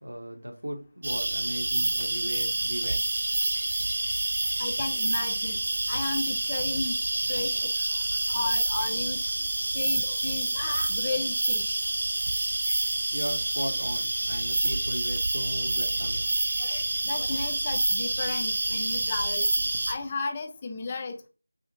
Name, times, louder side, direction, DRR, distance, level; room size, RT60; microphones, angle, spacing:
voice 1, 0.0-3.0 13.1-16.3, equal, 90° right, 1.8 m, -37 dB
sound 1, 1.0-19.9, right 2 dB, 45° right, 0.7 m, -28 dB
voice 2, 4.6-5.6 5.9-7.0 7.3-8.0 8.3-9.2 9.7-11.8 16.6-21.3, left 3 dB, 20° left, 0.5 m, -34 dB
4.8 x 3.6 x 3.1 m
figure-of-eight pair, 170°, 0 cm